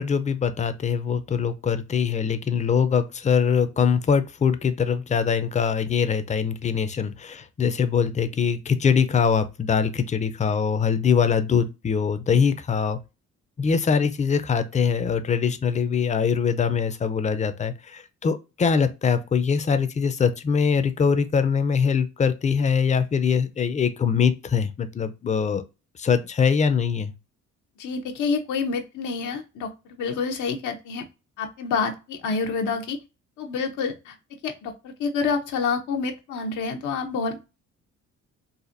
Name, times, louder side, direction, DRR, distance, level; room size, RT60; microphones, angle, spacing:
voice 1, 0.0-13.0 13.6-25.6 26.0-27.1, left 6 dB, 25° left, 0.5 m, -23 dB
voice 2, 27.8-31.0 31.4-33.0 33.4-34.1 34.4-37.5, left 5 dB, 80° left, 0.7 m, -28 dB
4.1 x 2.5 x 2.5 m
cardioid pair, 90°, 30 cm